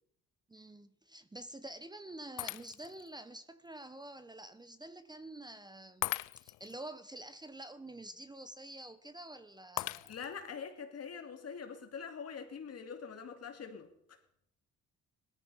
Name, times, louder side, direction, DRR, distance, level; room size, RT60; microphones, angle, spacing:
voice 1, 0.5-10.1, right 1 dB, 15° right, 12 dB, 0.9 m, -48 dB
Shatter, 2.4-3.1 3.7-3.8 6.0-6.7 9.8-10.5, left 19 dB, 90° left, 0.5 m, -39 dB
voice 2, 10.1-13.9, left 6 dB, 55° left, 6 dB, 2.7 m, -44 dB
18.0 x 13.0 x 5.6 m, 0.73 s
cardioid pair, 90°, 30 cm